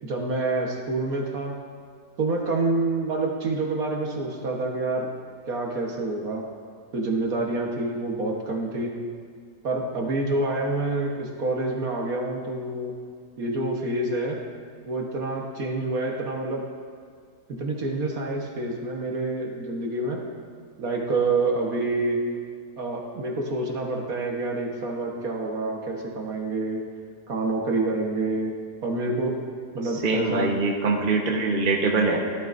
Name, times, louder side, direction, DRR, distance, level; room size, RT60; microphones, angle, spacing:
voice 1, 0.0-1.5 2.2-5.1 5.5-6.5 6.9-9.0 9.6-12.9 13.4-14.4 14.8-16.6 17.6-20.2 20.8-22.2 22.8-26.8 27.3-28.5 28.8-29.3 29.7-30.5, right 2 dB, 60° right, 0 dB, 1.7 m, -27 dB
voice 2, 30.0-32.2, right 3 dB, 35° right, 0 dB, 1.2 m, -23 dB
17.5 x 11.5 x 2.6 m, 2.1 s
omnidirectional pair, 1.8 m